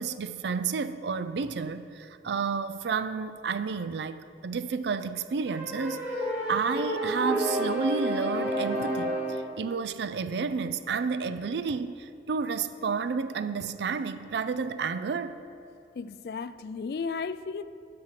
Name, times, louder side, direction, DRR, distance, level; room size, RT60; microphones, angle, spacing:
voice 1, 0.0-15.4, right 5 dB, 75° right, 0.4 m, -31 dB
sound 1, 5.5-9.5, right 1 dB, 10° right, 1.5 m, -30 dB
voice 2, 16.0-17.6, left 5 dB, 60° left, 0.3 m, -34 dB
10.5 x 6.4 x 5.7 m
head